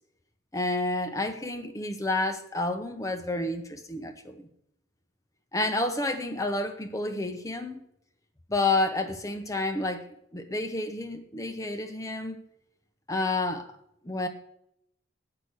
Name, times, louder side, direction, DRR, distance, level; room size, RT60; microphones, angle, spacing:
voice 1, 0.5-4.5 5.5-7.8 8.5-10.1 10.3-12.4 13.1-13.7 14.0-14.3, left 2 dB, 15° left, 0.8 m, -30 dB
8.1 x 5.8 x 7.9 m
head